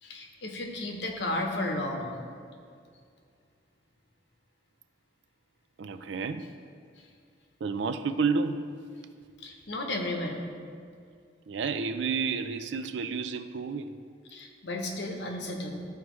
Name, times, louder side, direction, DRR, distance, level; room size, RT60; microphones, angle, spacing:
voice 1, 0.0-2.2 9.4-10.4 14.3-15.9, left 1 dB, 75° left, 2 dB, 1.0 m, -33 dB
voice 2, 5.8-6.5 7.6-8.7 11.5-13.9, right 5 dB, 80° right, 10 dB, 0.4 m, -30 dB
13.5 x 4.7 x 3.1 m, 2.2 s
head